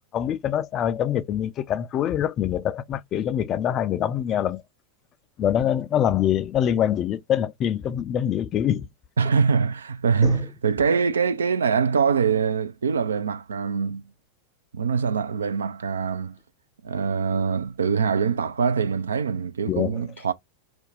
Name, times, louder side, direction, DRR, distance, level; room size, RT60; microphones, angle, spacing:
voice 1, 0.1-4.6 5.4-8.9 10.2-10.4 19.7-20.1, left 10 dB, 30° left, 0.3 m, -24 dB
voice 2, 9.2-14.0 14.7-16.4 16.8-20.3, right 6 dB, 70° right, 0.3 m, -23 dB
2.6 x 2.1 x 3.8 m
figure-of-eight pair, 90°, 0 cm